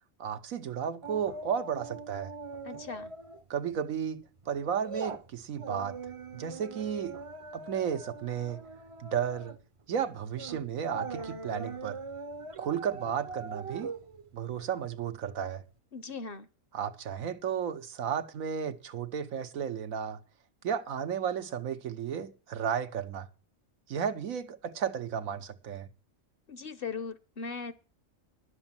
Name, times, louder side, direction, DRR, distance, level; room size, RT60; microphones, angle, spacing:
voice 1, 0.2-2.3 3.5-6.0 6.3-7.2 7.5-8.6 9.0-9.5 9.9-12.0 12.6-13.9 14.3-15.6 16.7-20.2 20.6-23.3 23.9-25.9, right 8 dB, 85° right, 1.4 m, -33 dB
sound 1, 1.0-3.4 3.7-4.0 4.4-15.4 15.7-15.8, right 4 dB, 35° right, 0.6 m, -42 dB
voice 2, 2.6-3.1 15.9-16.5 26.5-27.7, left 5 dB, 50° left, 0.9 m, -39 dB
11.5 x 7.0 x 7.4 m
omnidirectional pair, 1.4 m